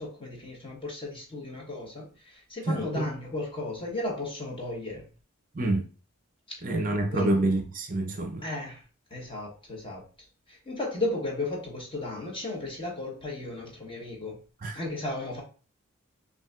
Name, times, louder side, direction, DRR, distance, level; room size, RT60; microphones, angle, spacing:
voice 1, 0.0-5.1 6.5-6.6 7.1-7.5 8.4-14.4 14.7-15.4, left 2 dB, 25° left, 1.1 m, -35 dB
voice 2, 6.6-8.4 14.6-14.7, right 2 dB, 40° right, 0.5 m, -27 dB
5.7 x 2.7 x 2.4 m
head